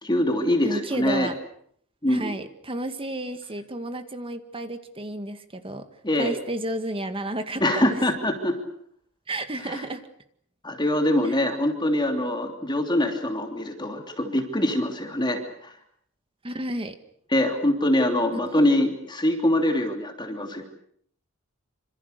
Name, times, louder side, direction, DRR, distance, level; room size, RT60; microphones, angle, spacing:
voice 1, 0.0-1.3 2.0-2.3 6.0-6.3 7.6-8.6 9.6-9.8 10.6-15.7 17.3-20.6, left 1 dB, 20° left, 4 dB, 3.1 m, -24 dB
voice 2, 0.6-1.4 2.1-5.9 6.2-8.0 9.3-10.0 11.2-11.4 16.4-17.0 18.3-18.6, right 1 dB, 25° right, 9 dB, 1.9 m, -32 dB
27.0 x 26.5 x 6.7 m, 0.66 s
head